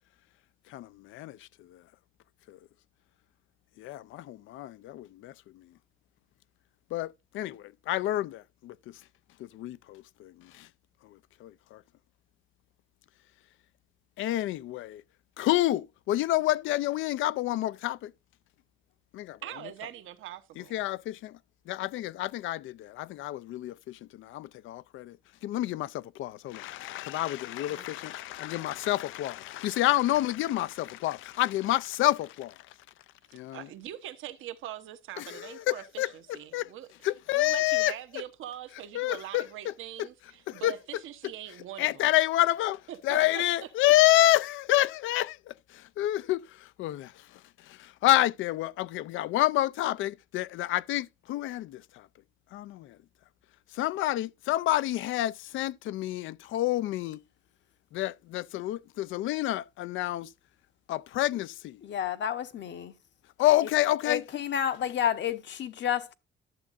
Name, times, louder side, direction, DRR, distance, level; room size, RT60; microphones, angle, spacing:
voice 1, 0.7-1.8 2.5-2.6 3.8-5.7 6.9-9.0 9.4-10.7 11.0-11.8 14.2-15.0 15.4-18.1 19.1-19.4 20.6-21.4 21.7-32.7 33.3-33.7 35.2-36.7 37.0-37.9 38.9-39.7 40.0-40.1 40.5-40.8 41.8-42.8 43.0-52.1 52.5-53.0 53.7-57.2 57.9-60.3 60.9-61.8 63.4-64.2, left 15 dB, 80° left, 0.4 m, -29 dB
voice 2, 19.4-20.8 27.7-27.9 33.5-36.9 37.3-41.9 42.9-43.4, right 12 dB, 85° right, 1.0 m, -42 dB
voice 3, 61.8-63.0 64.0-66.1, left 9 dB, 65° left, 1.0 m, -30 dB
11.5 x 7.2 x 2.5 m
cardioid pair, 90°, 20 cm